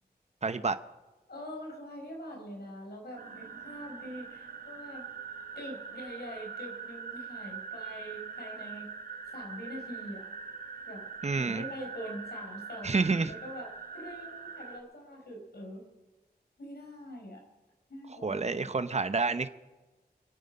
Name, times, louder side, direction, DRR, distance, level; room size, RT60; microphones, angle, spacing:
voice 1, 0.4-0.8 11.2-11.6 12.8-13.3 18.2-19.5, right 4 dB, 40° right, 11 dB, 0.8 m, -29 dB
voice 2, 1.3-5.0 5.5-8.9 9.3-10.2 10.9-11.0 11.3-15.8 16.6-17.4 17.9-18.7, equal, 80° left, 1 dB, 5.0 m, -43 dB
sound 1, 3.2-14.8, right 5 dB, 65° right, 1.7 m, -43 dB
26.5 x 9.2 x 5.6 m, 1.1 s
wide cardioid pair, 60°, 17 cm